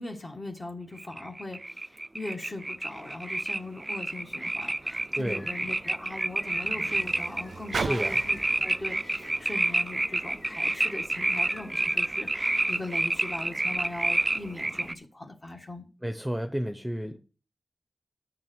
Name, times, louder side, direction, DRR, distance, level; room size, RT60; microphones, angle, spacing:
voice 1, 0.0-15.9, left 2 dB, 35° left, 2 dB, 1.5 m, -40 dB
sound 1, 1.0-14.9, right 2 dB, 25° right, 0.4 m, -29 dB
Car, 4.2-10.7 11.5-11.6, right 5 dB, 85° right, 0.5 m, -41 dB
voice 2, 5.2-5.5 7.7-8.2 16.0-17.4, equal, 5° right, 8 dB, 0.8 m, -32 dB
sound 2, 5.4-12.7, left 3 dB, 70° left, 1.2 m, -50 dB
7.6 x 6.4 x 6.1 m, 0.36 s
wide cardioid pair, 80°, 0 cm